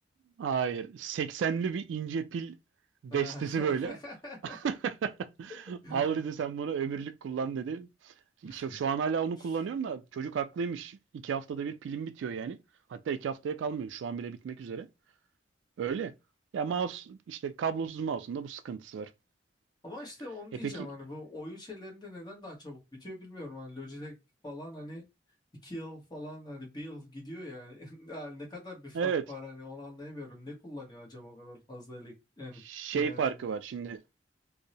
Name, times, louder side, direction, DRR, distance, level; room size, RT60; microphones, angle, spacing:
voice 1, 0.4-2.5 3.0-4.0 4.4-8.1 8.4-12.6 12.9-14.9 15.8-16.1 16.5-19.1 20.6-20.7 28.9-29.2 32.7-34.0, right 6 dB, 80° right, 0.3 m, -33 dB
voice 2, 3.1-4.6 5.5-6.2 8.4-8.8 9.4-9.5 19.8-24.2 24.4-25.0 25.6-32.6 32.9-33.4, left 1 dB, 25° left, 1.0 m, -43 dB
2.6 x 2.0 x 2.7 m
head